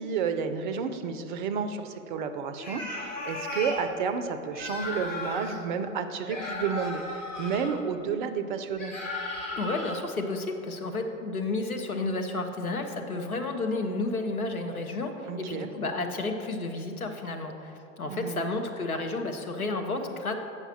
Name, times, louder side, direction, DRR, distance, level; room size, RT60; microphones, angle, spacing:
voice 1, 0.0-8.9 15.2-15.7 18.1-18.5, right 6 dB, 35° right, 9 dB, 0.5 m, -31 dB
sound 1, 2.6-3.8 4.5-5.6 6.3-7.7 8.8-9.9, left 2 dB, 60° left, 1.6 m, -35 dB
voice 2, 9.6-17.7 18.0-20.3, left 2 dB, 80° left, 5 dB, 0.8 m, -31 dB
7.9 x 5.6 x 4.5 m, 2.8 s
figure-of-eight pair, 95°, 42 cm